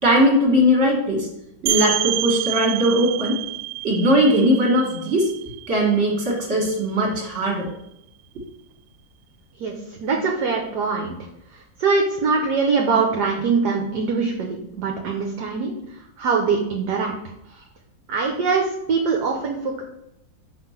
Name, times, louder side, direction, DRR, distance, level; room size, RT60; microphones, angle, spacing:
voice 1, 0.0-1.3 1.6-3.4 3.8-7.7, equal, 40° right, 0 dB, 2.1 m, -19 dB
sound 1, 1.7-7.1, right 15 dB, 90° right, 1.4 m, -28 dB
voice 2, 9.6-11.1 11.5-17.1 17.5-17.6 18.1-19.8, right 4 dB, 65° right, 1 dB, 1.4 m, -23 dB
5.7 x 4.5 x 5.8 m, 0.82 s
omnidirectional pair, 2.0 m